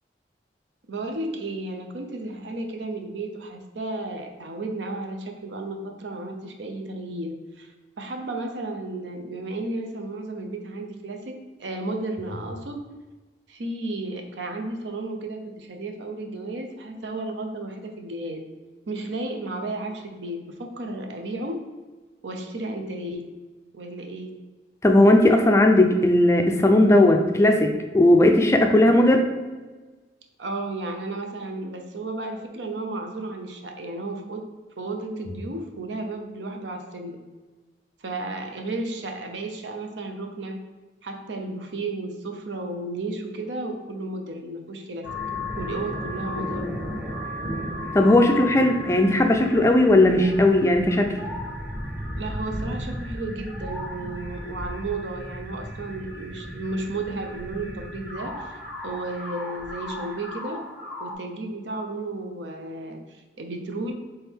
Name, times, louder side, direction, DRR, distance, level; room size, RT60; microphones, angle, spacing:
voice 1, 0.9-7.7 8.0-12.8 13.5-18.4 18.9-21.6 22.2-23.2 23.7-24.3 30.4-34.4 34.8-37.2 38.0-40.6 41.0-45.1 45.6-46.7 52.2-58.5 58.8-60.6 61.0-63.9, right 2 dB, 85° right, 4 dB, 0.6 m, -33 dB
voice 2, 24.8-29.2 47.9-51.1, left 1 dB, 15° left, 4 dB, 0.3 m, -17 dB
sound 1, 45.0-61.1, left 1 dB, 10° right, 1.0 m, -34 dB
4.3 x 3.4 x 3.5 m, 1.3 s
head